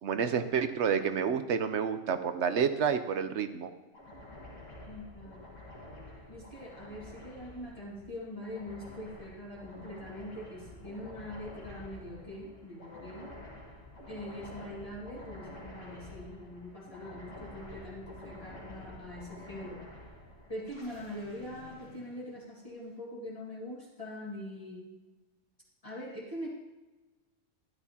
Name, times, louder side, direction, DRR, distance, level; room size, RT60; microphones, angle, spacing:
voice 1, 0.0-3.7, right 7 dB, 65° right, 9 dB, 1.0 m, -29 dB
sound 1, 3.9-22.8, left 1 dB, 75° left, 2.1 m, -49 dB
voice 2, 4.9-5.5 6.3-13.3 14.1-19.8 20.5-24.9 25.8-26.5, left 1 dB, 25° left, -6 dB, 2.2 m, -43 dB
12.5 x 11.5 x 2.9 m, 1.2 s
omnidirectional pair, 1.3 m